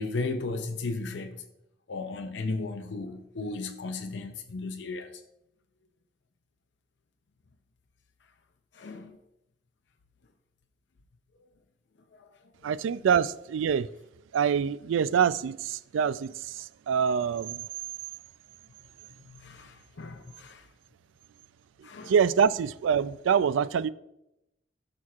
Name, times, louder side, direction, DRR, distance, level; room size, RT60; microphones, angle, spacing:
voice 1, 0.0-1.4 1.9-5.1 8.7-9.2 12.2-12.3 19.3-20.7 21.8-22.1, left 3 dB, 70° left, 0.6 m, -35 dB
voice 2, 12.6-13.9 14.3-17.6 22.1-23.9, right 7 dB, 85° right, 0.3 m, -25 dB
14.0 x 6.1 x 2.4 m
head